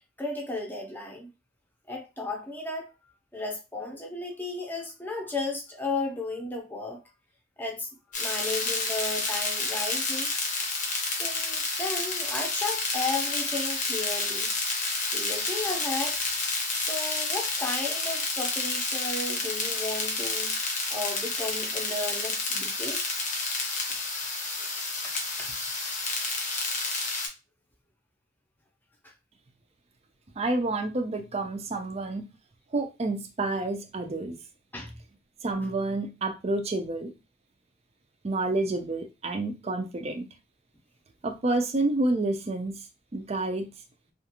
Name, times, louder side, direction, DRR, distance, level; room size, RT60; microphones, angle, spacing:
voice 1, 0.2-1.3 1.9-7.0 7.6-10.3 11.1-14.6 15.0-16.2 16.7-20.6 20.9-23.0 23.9-24.0 24.4-25.6 29.0-29.1 34.7-35.0, left 3 dB, 10° left, 0.7 m, -34 dB
sound 1, 8.1-27.3, left 3 dB, 45° left, 0.8 m, -30 dB
voice 2, 30.4-32.3 32.7-34.4 35.4-37.1 38.2-40.3 41.2-42.9 43.1-43.7, right 2 dB, 35° right, 0.5 m, -29 dB
2.5 x 2.4 x 2.9 m
head